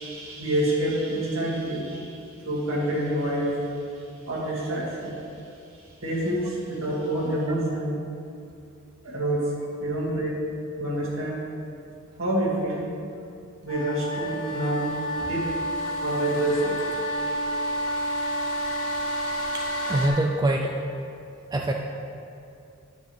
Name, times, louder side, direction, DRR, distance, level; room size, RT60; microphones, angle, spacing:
voice 1, 0.0-3.7 4.0-5.2 5.7-8.0 9.0-9.5 9.8-10.4 10.8-11.4 12.2-12.9 13.6-14.9 15.2-15.5 16.0-16.9, right 1 dB, 70° right, -5 dB, 2.1 m, -27 dB
sound 1, 13.7-20.1, equal, 80° left, 1.2 m, -29 dB
voice 2, 19.5-20.7 21.5-21.7, right 1 dB, 20° right, 1 dB, 0.3 m, -24 dB
9.4 x 8.1 x 3.2 m, 2.6 s
head